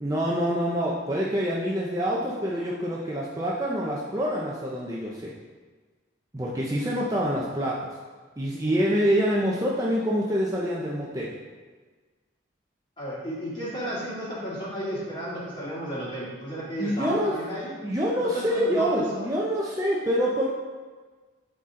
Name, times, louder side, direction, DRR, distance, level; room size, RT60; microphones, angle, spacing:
voice 1, 0.0-5.3 6.3-7.9 8.4-11.3 16.8-17.3 17.8-20.5, equal, 20° right, -4 dB, 0.7 m, -26 dB
voice 2, 13.0-17.8 18.2-19.3, equal, 25° left, -8 dB, 2.5 m, -33 dB
11.5 x 4.2 x 3.7 m, 1.4 s
head